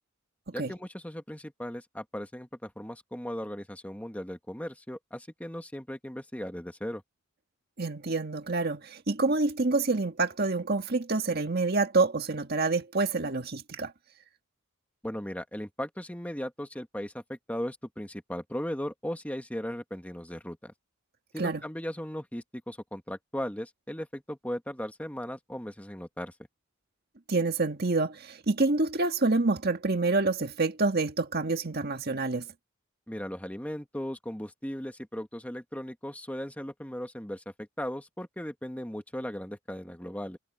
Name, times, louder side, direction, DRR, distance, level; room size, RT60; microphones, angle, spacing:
voice 1, 0.5-7.0 15.0-20.7 21.3-26.3 33.1-40.4, equal, 5° left, 1.8 m, -37 dB
voice 2, 7.8-13.9 21.4-21.6 27.3-32.5, right 3 dB, 50° right, 1.7 m, -27 dB
head